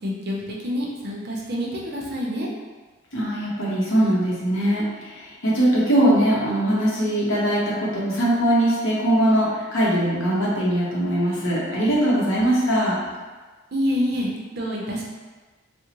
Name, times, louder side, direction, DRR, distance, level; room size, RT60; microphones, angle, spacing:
voice 1, 0.0-2.5 13.7-15.0, equal, 50° right, -3 dB, 0.5 m, -27 dB
voice 2, 3.1-13.0, right 1 dB, 75° left, -6 dB, 0.9 m, -21 dB
3.6 x 2.0 x 2.9 m, 1.3 s
head